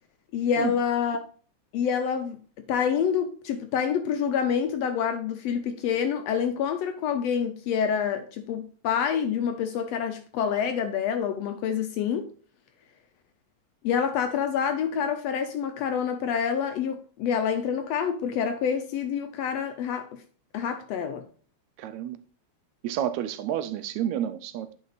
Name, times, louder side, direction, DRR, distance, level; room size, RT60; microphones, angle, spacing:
voice 1, 0.3-1.3 1.7-2.4 2.7-12.3 13.8-20.2 20.5-21.2, left 7 dB, 75° left, 1.6 m, -27 dB
voice 2, 21.8-22.2 22.8-24.7, right 10 dB, 80° right, 1.8 m, -30 dB
9.7 x 5.2 x 4.0 m
omnidirectional pair, 3.4 m